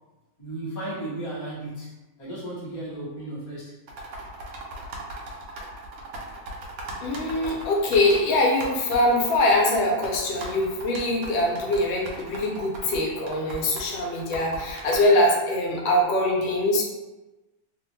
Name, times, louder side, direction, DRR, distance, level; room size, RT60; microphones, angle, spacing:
voice 1, 0.4-3.7, right 1 dB, 30° left, -8 dB, 0.5 m, -35 dB
sound 1, 3.9-15.0, right 2 dB, 70° right, 0.8 m, -38 dB
voice 2, 7.0-16.8, left 1 dB, 85° left, -1 dB, 1.4 m, -23 dB
3.3 x 2.1 x 3.0 m, 1.1 s
omnidirectional pair, 2.0 m